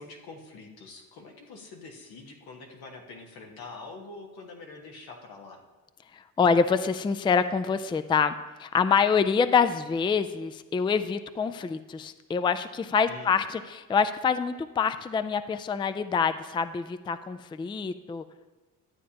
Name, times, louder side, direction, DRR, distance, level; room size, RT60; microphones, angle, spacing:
voice 1, 0.0-5.6 13.1-13.4, left 3 dB, 85° left, 1 dB, 1.4 m, -45 dB
voice 2, 6.1-8.3 8.6-18.2, left 6 dB, 15° left, 11 dB, 0.3 m, -26 dB
12.0 x 8.3 x 2.9 m, 1.2 s
cardioid pair, 80°, 36 cm